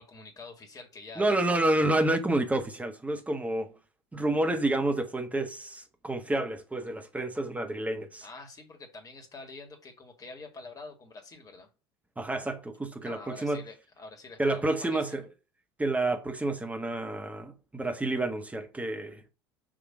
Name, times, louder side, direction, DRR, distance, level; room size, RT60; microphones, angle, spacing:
voice 1, 0.0-1.4 8.2-11.7 13.0-15.2, left 3 dB, 30° left, 1.9 m, -46 dB
voice 2, 1.2-3.7 4.1-8.2 12.2-13.6 14.4-15.2 15.8-19.2, right 2 dB, 10° right, 1.3 m, -29 dB
6.3 x 3.0 x 5.0 m
figure-of-eight pair, 65°, 13 cm